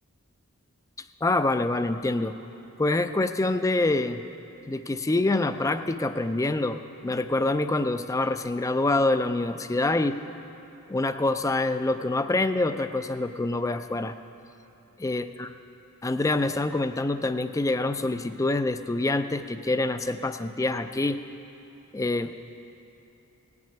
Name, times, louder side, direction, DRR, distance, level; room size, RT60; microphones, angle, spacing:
voice 1, 1.2-2.4 2.8-4.2 4.7-10.2 10.9-14.1 15.0-15.5 16.0-21.2 21.9-22.4, left 2 dB, 15° left, 10 dB, 0.4 m, -26 dB
18.0 x 6.1 x 8.7 m, 2.9 s
head